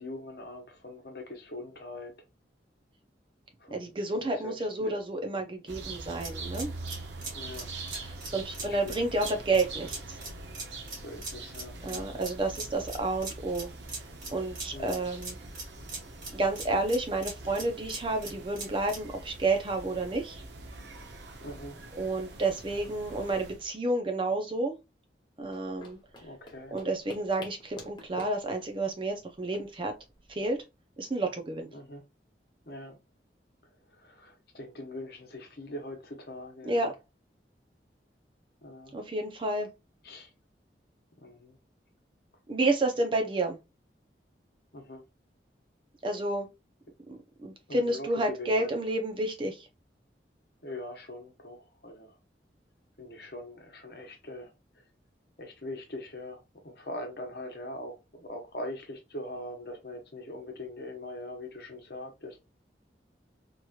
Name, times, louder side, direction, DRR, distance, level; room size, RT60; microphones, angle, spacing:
voice 1, 0.0-2.1 3.6-3.9 4.2-4.9 7.3-7.7 8.6-9.3 10.9-12.1 14.7-15.0 21.4-21.8 26.2-26.8 31.7-32.0 32.7-33.0 33.9-36.9 38.6-39.0 40.0-40.3 41.2-41.6 44.7-45.0 47.7-48.7 50.6-52.2 53.0-54.8 55.4-62.4, left 1 dB, 60° left, 0.9 m, -42 dB
voice 2, 3.7-6.7 7.9-10.2 11.8-13.7 14.3-15.4 16.3-20.4 22.0-24.7 25.4-26.0 26.7-29.9 30.3-30.6 31.0-31.7 36.7-36.9 38.9-39.7 42.5-43.6 46.0-46.5 47.1-49.7, right 2 dB, 30° right, 0.5 m, -30 dB
sound 1, 5.7-23.7, right 2 dB, 85° right, 0.7 m, -44 dB
sound 2, 6.2-19.1, right 3 dB, 50° right, 1.6 m, -42 dB
sound 3, 25.4-30.6, left 1 dB, 25° left, 0.8 m, -49 dB
3.0 x 2.9 x 2.3 m
head